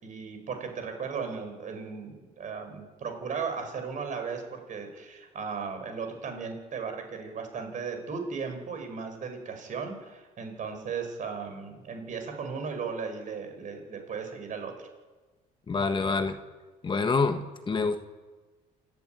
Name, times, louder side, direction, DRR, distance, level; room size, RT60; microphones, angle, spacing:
voice 1, 0.0-14.7, right 5 dB, 50° right, 6 dB, 5.4 m, -36 dB
voice 2, 15.7-16.4 16.8-18.0, left 4 dB, 30° left, 8 dB, 1.4 m, -27 dB
27.5 x 12.0 x 9.3 m, 1.3 s
cardioid pair, 110°, 17 cm